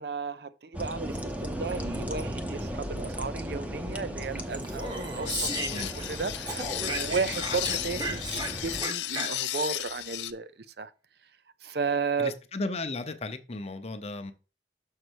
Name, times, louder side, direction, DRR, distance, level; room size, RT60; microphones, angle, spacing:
voice 1, 0.0-10.9 11.6-12.3, right 4 dB, 65° right, 0.6 m, -34 dB
sound 1, 0.7-8.8, equal, 10° right, 0.7 m, -36 dB
Speech, 4.5-6.2 6.5-9.6, right 2 dB, 25° right, 1.0 m, -35 dB
sound 2, 5.3-10.3, left 13 dB, 80° left, 0.6 m, -34 dB
voice 2, 12.2-14.3, left 2 dB, 35° left, 0.7 m, -35 dB
6.5 x 3.9 x 6.3 m
head